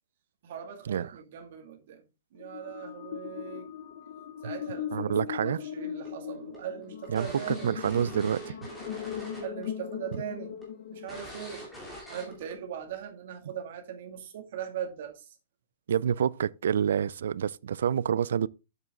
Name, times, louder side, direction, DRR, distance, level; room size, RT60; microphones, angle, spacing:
voice 1, 0.4-2.1 2.3-3.7 4.4-7.8 9.4-10.6 10.9-11.7 12.1-15.4, right 8 dB, 45° right, 2.3 m, -40 dB
sound 1, 2.4-11.8, left 9 dB, 50° left, 0.9 m, -39 dB
voice 2, 4.9-5.6 7.1-8.5 15.9-18.5, right 8 dB, 70° right, 0.4 m, -28 dB
sound 2, 6.1-9.7 9.9-10.2 10.6-10.7 11.1-12.5, equal, 5° left, 2.6 m, -44 dB
7.9 x 7.5 x 3.7 m
hypercardioid pair, 180°, 0 cm